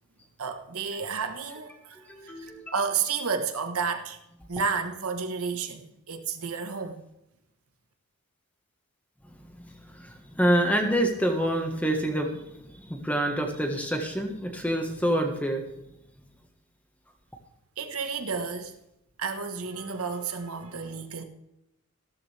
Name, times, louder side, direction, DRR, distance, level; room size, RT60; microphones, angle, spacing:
voice 1, 0.4-4.2 4.5-7.0 17.8-18.7 19.2-21.2, right 5 dB, 80° right, 6 dB, 1.4 m, -31 dB
voice 2, 2.3-2.7 10.4-12.4 12.9-15.6, right 1 dB, 5° left, 4 dB, 1.5 m, -26 dB
15.0 x 13.5 x 3.5 m, 0.86 s
head